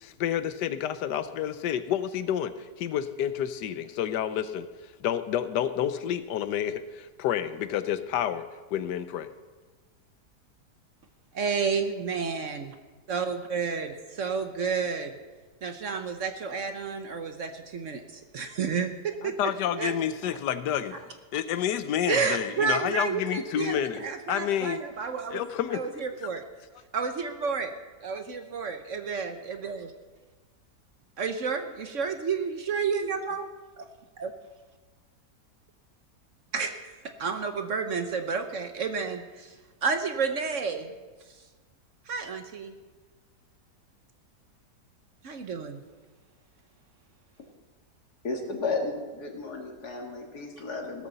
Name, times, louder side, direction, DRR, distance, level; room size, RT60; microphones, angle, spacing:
voice 1, 0.0-2.5 2.8-4.7 5.0-8.4 8.7-9.3 19.2-21.0 21.3-24.8 25.3-25.8, left 10 dB, 90° left, 12 dB, 1.3 m, -29 dB
voice 2, 11.3-12.7 13.1-15.1 15.6-19.3 19.7-19.9 22.1-25.4 25.7-26.5 26.9-27.7 28.0-29.9 31.2-33.5 33.8-33.9 34.2-34.3 36.5-36.9 37.2-39.5 39.8-40.9 42.1-42.7 45.2-45.8, right 5 dB, 55° right, 7 dB, 1.1 m, -30 dB
voice 3, 48.2-51.1, left 3 dB, 70° left, 2 dB, 2.5 m, -33 dB
17.0 x 13.5 x 4.0 m, 1.3 s
omnidirectional pair, 1.8 m